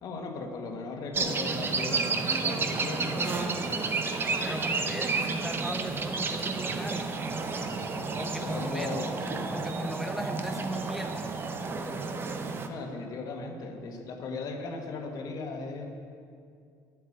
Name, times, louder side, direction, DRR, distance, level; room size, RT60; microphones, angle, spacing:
voice 1, 0.0-3.8 8.4-9.5 12.6-15.9, left 3 dB, 55° left, 3 dB, 1.8 m, -37 dB
sound 1, 1.1-12.7, right 4 dB, 30° right, 1.0 m, -31 dB
voice 2, 3.3-3.8 4.4-7.1 8.1-9.0 9.5-11.4, equal, 5° right, 4 dB, 0.6 m, -38 dB
11.0 x 8.3 x 8.7 m, 2.3 s
cardioid pair, 130°, 8 cm